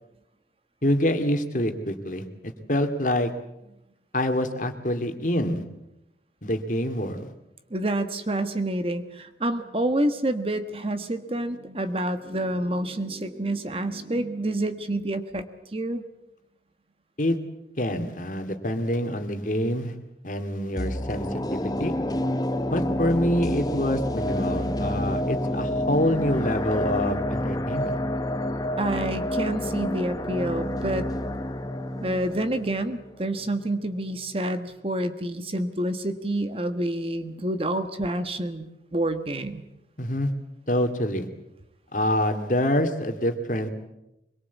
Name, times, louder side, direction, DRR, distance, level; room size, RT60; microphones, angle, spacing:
voice 1, 0.8-2.2 2.7-3.3 4.1-5.6 6.4-7.3 17.2-17.4 17.8-19.9 20.2-22.0 22.7-28.0 40.0-40.3 40.7-41.3 41.9-43.7, left 1 dB, 45° left, 6 dB, 2.5 m, -26 dB
voice 2, 7.7-15.5 15.7-16.0 28.8-31.1 32.0-39.6, right 1 dB, 30° right, 9 dB, 1.4 m, -28 dB
sound 1, 20.8-33.9 34.2-34.3, left 1 dB, 20° left, 1.2 m, -29 dB
24.5 x 22.5 x 8.3 m, 0.89 s
head